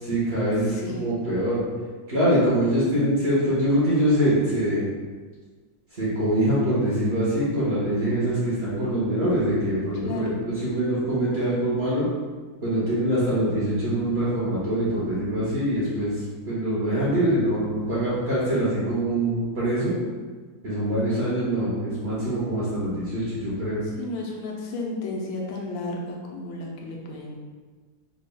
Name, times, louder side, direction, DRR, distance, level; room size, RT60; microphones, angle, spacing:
voice 1, 0.0-1.6 2.1-4.9 6.0-12.0 12.6-16.1 16.5-19.9 20.6-23.8, right 1 dB, 45° right, -9 dB, 0.9 m, -24 dB
voice 2, 0.7-1.0 10.0-10.4 23.8-27.4, left 2 dB, 90° left, -1 dB, 1.4 m, -33 dB
3.8 x 3.3 x 2.2 m, 1.4 s
omnidirectional pair, 2.0 m